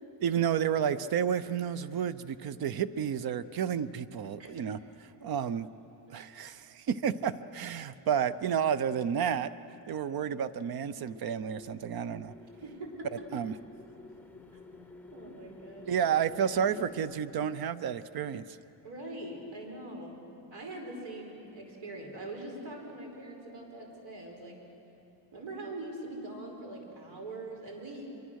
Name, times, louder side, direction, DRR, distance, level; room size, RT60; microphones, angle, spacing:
voice 1, 0.2-5.7 6.1-9.5 9.9-12.3 13.3-13.5 15.9-18.6, right 8 dB, 50° right, 14 dB, 0.7 m, -31 dB
sound 1, 11.0-17.2, left 2 dB, 5° left, 0.7 m, -51 dB
voice 2, 12.6-13.1 14.5-14.6 15.1-16.1 16.5-16.6 18.8-20.2 20.5-24.6 25.3-28.2, right 2 dB, 75° right, 1 dB, 5.1 m, -42 dB
26.5 x 23.0 x 6.4 m, 2.9 s
cardioid pair, 170°, 46 cm